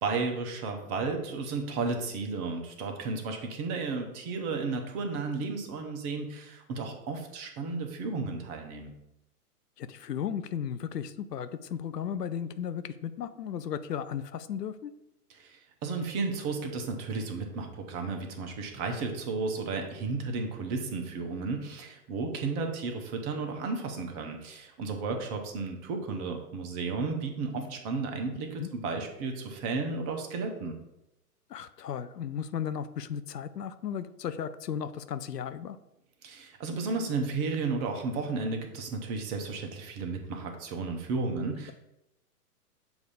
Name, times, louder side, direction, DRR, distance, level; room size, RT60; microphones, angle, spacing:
voice 1, 0.0-8.9 15.3-30.7 36.2-41.7, right 4 dB, 25° right, 3 dB, 0.6 m, -33 dB
voice 2, 9.8-14.9 28.6-28.7 31.5-35.8, left 8 dB, 85° left, 12 dB, 0.6 m, -35 dB
7.1 x 2.7 x 4.9 m, 0.88 s
hypercardioid pair, 125°, 47 cm